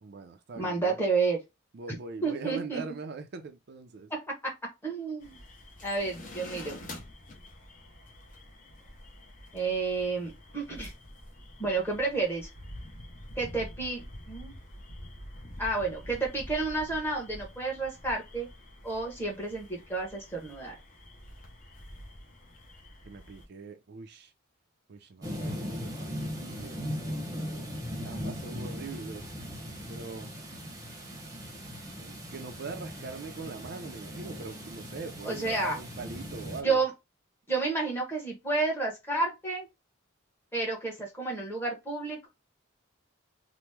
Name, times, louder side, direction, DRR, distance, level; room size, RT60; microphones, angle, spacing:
voice 1, 0.0-1.0 1.7-4.1 23.1-24.3 24.9-25.7 26.0-26.9 28.0-29.3 29.9-30.3 32.0-36.8, right 4 dB, 55° right, 0.4 m, -42 dB
voice 2, 0.5-1.4 2.2-2.8 4.1-5.4 5.8-6.9 9.5-10.9 11.6-12.5 13.4-14.6 15.6-18.5 18.8-20.7 35.2-35.8 36.6-36.9 37.5-39.7 40.5-42.3, right 3 dB, 10° left, 1.0 m, -31 dB
sound 1, 5.2-23.5, left 1 dB, 40° left, 0.7 m, -47 dB
sound 2, 25.2-36.6, equal, 20° right, 0.8 m, -39 dB
2.9 x 2.0 x 3.3 m
head